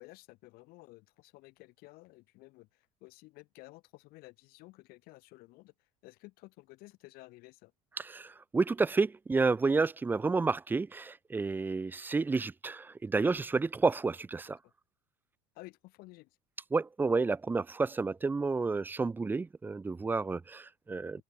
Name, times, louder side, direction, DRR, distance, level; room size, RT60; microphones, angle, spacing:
voice 1, 0.0-7.7 14.4-14.7 15.5-16.4 21.1-21.2, left 21 dB, 65° left, 7.2 m, -54 dB
voice 2, 8.0-14.6 16.7-21.2, right 4 dB, 10° right, 0.4 m, -30 dB
supercardioid pair, 90°, 17 cm